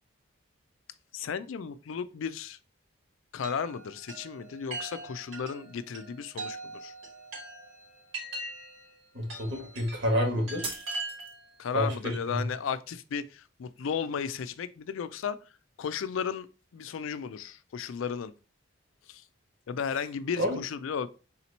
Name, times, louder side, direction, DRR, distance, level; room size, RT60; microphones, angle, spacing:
voice 1, 1.1-2.6 3.3-6.9 11.6-15.4 15.8-16.5 16.7-18.3 19.1-19.2 19.7-21.1, left 6 dB, 75° left, 0.4 m, -34 dB
Chime, 3.4-11.5, right 2 dB, 85° right, 2.6 m, -42 dB
voice 2, 9.1-10.8 11.7-12.4 20.4-20.6, equal, 60° right, 1.6 m, -29 dB
sound 1, 10.6-11.7, right 3 dB, 25° right, 0.7 m, -39 dB
4.1 x 2.9 x 4.0 m
head